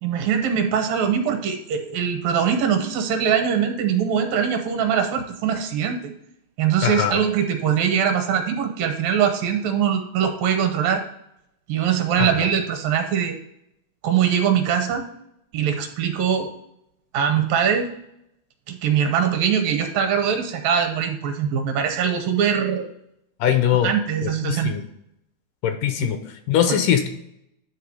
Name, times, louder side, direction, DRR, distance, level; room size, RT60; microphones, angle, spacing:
voice 1, 0.0-6.1 6.6-11.0 11.7-13.3 14.0-15.1 15.5-16.5 17.1-17.9 18.7-22.9 23.8-24.7 26.0-26.1 26.7-26.8, right 8 dB, 80° right, 5 dB, 2.6 m, -22 dB
voice 2, 6.8-7.2 12.2-12.5 23.4-23.9 24.2-24.9 25.6-26.2 26.5-27.1, left 9 dB, 80° left, 7 dB, 2.1 m, -21 dB
10.0 x 3.4 x 4.7 m, 0.78 s
omnidirectional pair, 4.1 m